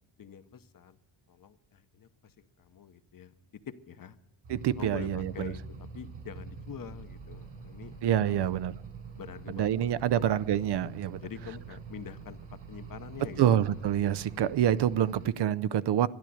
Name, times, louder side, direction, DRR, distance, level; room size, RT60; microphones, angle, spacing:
voice 1, 0.2-1.0 1.3-3.3 3.7-4.2 4.8-7.9 8.3-8.5 9.2-10.4 11.0-12.4 12.7-13.8, left 8 dB, 45° left, 11 dB, 0.9 m, -45 dB
sound 1, 4.4-15.3, right 5 dB, 80° right, 5.3 m, -45 dB
voice 2, 4.5-5.5 8.0-8.8 9.5-11.2 13.4-16.1, right 10 dB, 60° right, 16 dB, 0.6 m, -27 dB
12.0 x 10.5 x 8.6 m, 1.0 s
cardioid pair, 105°, 47 cm